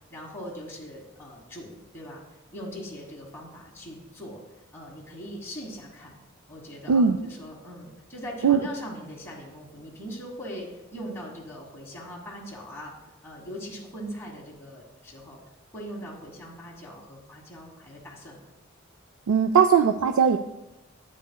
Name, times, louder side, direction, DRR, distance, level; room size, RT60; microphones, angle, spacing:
voice 1, 0.1-2.2 2.5-4.4 4.7-6.2 6.5-12.9 13.2-15.4 15.7-18.4, equal, 10° left, -4 dB, 1.4 m, -40 dB
voice 2, 19.3-20.4, right 6 dB, 90° right, 6 dB, 0.4 m, -19 dB
12.0 x 8.9 x 2.3 m, 0.94 s
head